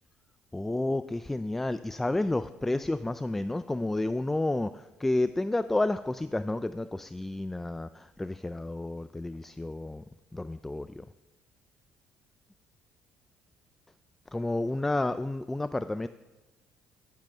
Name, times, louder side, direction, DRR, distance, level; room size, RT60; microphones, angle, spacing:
voice 1, 0.5-10.0 10.3-11.0 14.3-16.1, left 2 dB, 10° left, 13 dB, 0.3 m, -30 dB
13.5 x 7.6 x 6.1 m, 1.2 s
cardioid pair, 105°, 3 cm